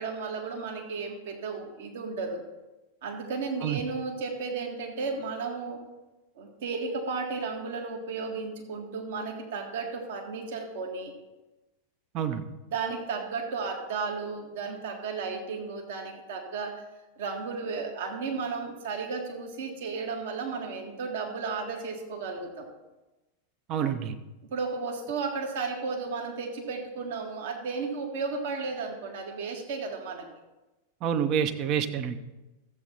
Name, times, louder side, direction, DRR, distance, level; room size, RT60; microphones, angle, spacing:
voice 1, 0.0-2.4 3.0-5.8 6.4-11.1 12.6-16.8 17.2-22.7 24.5-30.3, right 4 dB, 55° right, 1 dB, 1.8 m, -34 dB
voice 2, 23.7-24.1 31.0-32.3, right 8 dB, 35° right, 9 dB, 0.8 m, -28 dB
13.5 x 8.0 x 4.3 m, 1.1 s
figure-of-eight pair, 90°, 0 cm